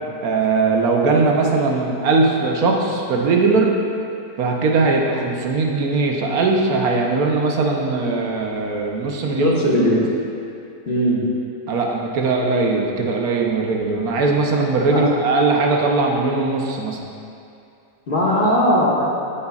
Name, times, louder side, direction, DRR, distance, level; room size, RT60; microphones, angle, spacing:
voice 1, 0.2-3.7 4.4-9.5 11.7-17.0, right 3 dB, 85° right, 0 dB, 1.4 m, -19 dB
voice 2, 9.4-10.0 10.9-11.2 14.9-15.0 18.1-19.1, equal, 40° left, -6 dB, 1.4 m, -18 dB
15.5 x 5.4 x 2.4 m, 2.6 s
omnidirectional pair, 1.5 m